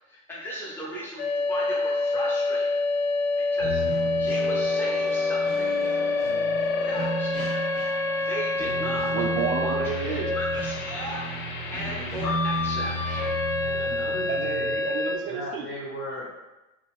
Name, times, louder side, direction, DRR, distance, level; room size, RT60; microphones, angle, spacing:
voice 1, 0.1-2.8 3.4-3.8 4.2-5.8 6.8-7.4 8.2-9.1 9.6-11.3 11.7-13.3 15.4-15.5, equal, 5° left, -5 dB, 0.7 m, -36 dB
sound 1, 1.2-15.2, left 3 dB, 65° left, 0.7 m, -27 dB
sound 2, 3.6-14.7, right 1 dB, 80° left, 1.1 m, -34 dB
voice 2, 9.1-10.3 14.3-15.7, right 6 dB, 30° right, 2 dB, 0.5 m, -31 dB
voice 3, 13.6-14.7 15.3-16.2, left 1 dB, 30° left, -7 dB, 1.2 m, -37 dB
2.9 x 2.3 x 3.5 m, 1.0 s
figure-of-eight pair, 90°, 44 cm